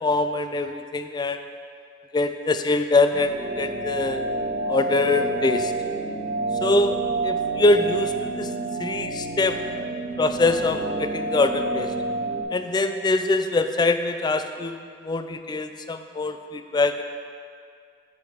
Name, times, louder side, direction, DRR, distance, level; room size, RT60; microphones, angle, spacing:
voice 1, 0.0-1.4 2.1-4.2 4.7-5.7 6.6-7.0 7.2-8.5 8.8-9.6 10.2-11.9 12.5-17.0, left 2 dB, 20° left, 8 dB, 0.3 m, -23 dB
sound 1, 3.1-12.4, right 3 dB, 55° right, 0.8 m, -29 dB
7.3 x 7.1 x 4.0 m, 2.2 s
head